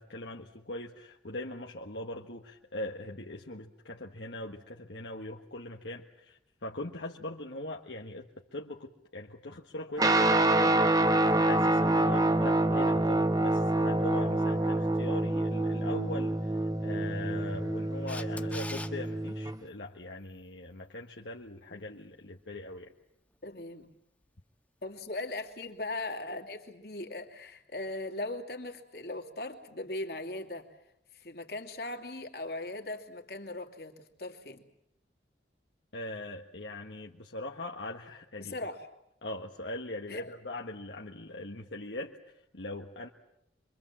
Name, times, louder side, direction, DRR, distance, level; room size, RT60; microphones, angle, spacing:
voice 1, 0.0-22.9 35.9-38.5 39.2-43.1, left 1 dB, 75° left, 0 dB, 1.6 m, -41 dB
Guitar, 10.0-19.6, right 2 dB, 20° right, 1.0 m, -27 dB
Camera, 18.1-18.9 25.6-25.7, left 2 dB, 10° left, 1.4 m, -41 dB
voice 2, 23.4-23.9 24.8-30.7 31.1-34.6 38.4-38.9 40.1-40.3, left 2 dB, 55° left, 2 dB, 2.8 m, -39 dB
26.5 x 24.0 x 7.5 m, 0.81 s
head